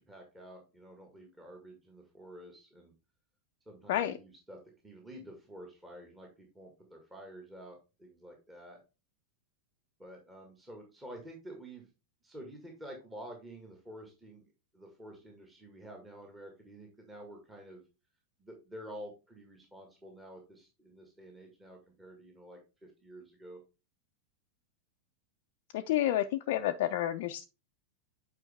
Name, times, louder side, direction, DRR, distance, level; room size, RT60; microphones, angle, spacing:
voice 1, 0.0-2.9 3.7-8.8 10.0-11.9 12.2-14.5 14.7-17.8 18.4-23.6, right 1 dB, 10° right, 1 dB, 1.9 m, -49 dB
voice 2, 25.7-27.4, left 12 dB, 50° left, 5 dB, 0.5 m, -30 dB
8.9 x 5.0 x 3.5 m, 0.29 s
figure-of-eight pair, 90°, 0 cm